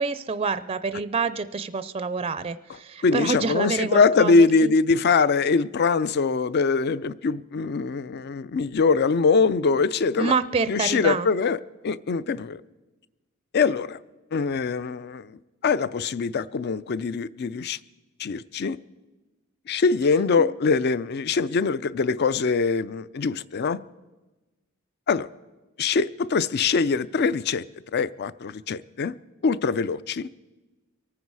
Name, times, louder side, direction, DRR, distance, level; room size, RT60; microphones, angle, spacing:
voice 1, 0.0-4.7 10.2-11.3 20.4-20.5, right 4 dB, 30° right, 0.4 m, -27 dB
voice 2, 3.0-10.3 10.7-12.6 13.5-14.0 14.3-17.8 18.2-18.8 19.7-23.8 25.1-25.3 25.8-27.6 27.9-29.2 29.4-30.3, left 4 dB, 55° left, 0.4 m, -23 dB
23.5 x 9.6 x 4.7 m
head